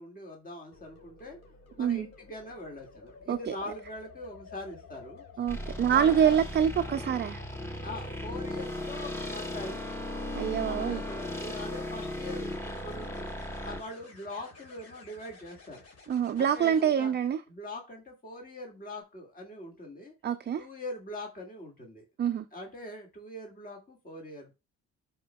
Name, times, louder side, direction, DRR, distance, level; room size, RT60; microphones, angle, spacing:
voice 1, 0.0-1.4 1.8-5.2 5.9-6.4 7.8-9.8 10.6-13.3 13.6-15.8 16.4-17.1 17.5-20.1 20.6-22.0 22.5-24.5, left 1 dB, 30° left, 2.0 m, -42 dB
sound 1, 0.7-16.8 18.7-19.0, left 4 dB, 55° left, 4.3 m, -53 dB
voice 2, 5.4-7.4 10.3-11.0 16.1-17.4 20.2-20.7 22.2-22.5, right 8 dB, 35° right, 0.4 m, -26 dB
sound 2, 5.5-13.8, left 1 dB, 10° left, 1.2 m, -36 dB
12.5 x 4.3 x 2.2 m
cardioid pair, 90°, 30 cm